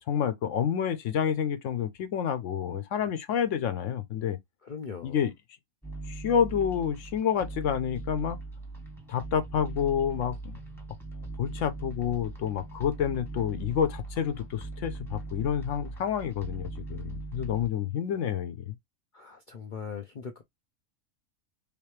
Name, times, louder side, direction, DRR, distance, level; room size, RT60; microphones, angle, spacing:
voice 1, 0.1-4.4 5.0-5.3 6.1-8.4 9.1-10.6 11.4-18.7, left 8 dB, 65° left, 0.9 m, -29 dB
voice 2, 4.6-5.2 19.1-20.4, left 6 dB, 85° left, 0.4 m, -40 dB
sound 1, 5.8-17.7, right 2 dB, ahead, 1.0 m, -40 dB
3.4 x 3.0 x 3.2 m
omnidirectional pair, 1.6 m